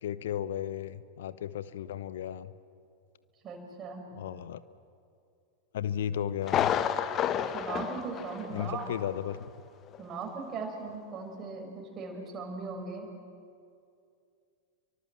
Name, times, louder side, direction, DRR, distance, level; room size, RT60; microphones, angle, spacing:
voice 1, 0.0-2.5 4.1-4.6 5.7-6.7 8.5-9.4, left 10 dB, 60° left, 15 dB, 0.9 m, -34 dB
voice 2, 3.4-4.1 7.5-8.9 10.0-13.1, right 4 dB, 25° right, 1 dB, 5.9 m, -38 dB
Thunder, 6.4-9.0 9.3-9.4 9.9-10.0, left 9 dB, 30° left, 1.1 m, -30 dB
29.5 x 24.0 x 7.6 m, 2.4 s
figure-of-eight pair, 90°, 0 cm